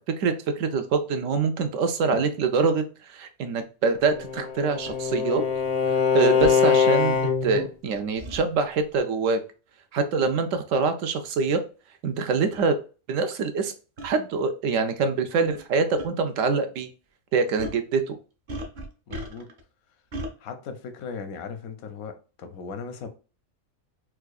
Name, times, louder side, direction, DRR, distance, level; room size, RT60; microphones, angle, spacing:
voice 1, 0.2-5.4 6.1-7.1 7.4-9.4 9.9-11.6 12.0-12.8 13.1-13.7 14.0-16.9 17.3-18.2, right 4 dB, 70° right, 0.9 m, -25 dB
Bowed string instrument, 4.1-7.7, left 6 dB, 45° left, 0.5 m, -23 dB
sound 1, 4.9-5.0 6.4-6.6 8.2-8.4 10.2-10.4 11.2-11.3 12.2-12.3 12.5-12.7 14.0-14.1 15.4-15.7 16.0-16.1 17.6-17.8 18.5-19.6 20.1-20.3, equal, 50° right, 0.6 m, -36 dB
voice 2, 19.1-19.5 20.4-23.1, left 5 dB, 85° left, 1.1 m, -38 dB
4.5 x 2.3 x 2.3 m
omnidirectional pair, 1.5 m